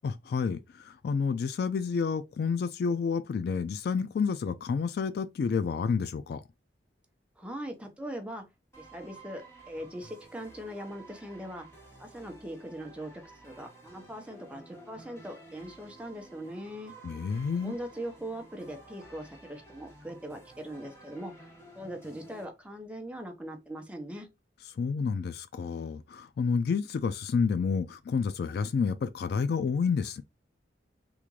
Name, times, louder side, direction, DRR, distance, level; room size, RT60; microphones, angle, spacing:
voice 1, 0.0-6.4 17.0-17.7 24.8-30.2, left 5 dB, 60° left, 0.3 m, -29 dB
voice 2, 7.4-8.4 8.8-11.7 12.0-16.9 17.6-21.5 21.7-24.3, right 1 dB, 5° right, 0.8 m, -41 dB
sound 1, 8.7-22.4, right 2 dB, 15° left, 1.3 m, -53 dB
3.6 x 2.5 x 3.1 m
head